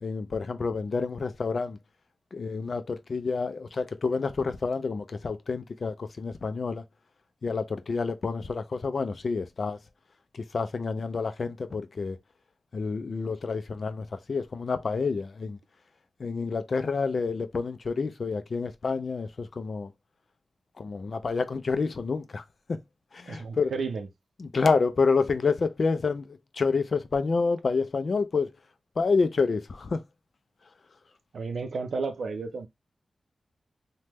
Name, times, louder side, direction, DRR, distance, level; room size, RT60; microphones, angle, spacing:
voice 1, 0.0-1.8 2.3-6.8 7.4-9.8 10.3-12.2 12.7-15.6 16.2-19.9 20.8-22.8 23.1-23.7 24.4-28.5 29.0-30.0, left 4 dB, 50° left, 0.4 m, -28 dB
voice 2, 23.3-24.1 31.3-32.7, right 4 dB, 75° right, 0.5 m, -32 dB
3.3 x 2.1 x 2.9 m
wide cardioid pair, 165°, 0 cm